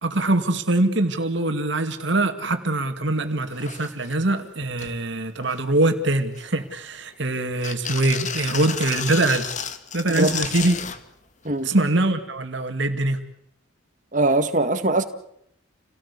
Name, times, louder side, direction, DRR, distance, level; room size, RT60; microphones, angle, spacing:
voice 1, 0.0-9.5 9.9-10.7 11.6-13.2, right 2 dB, 60° right, 2.4 m, -23 dB
sound 1, 3.1-3.2 3.5-4.1 4.6-4.9 5.4-5.9 6.3-7.1 7.6-11.0 12.0-12.1, left 7 dB, 35° left, 1.8 m, -32 dB
voice 2, 14.1-15.0, right 2 dB, 35° right, 1.9 m, -21 dB
29.0 x 18.0 x 8.4 m
head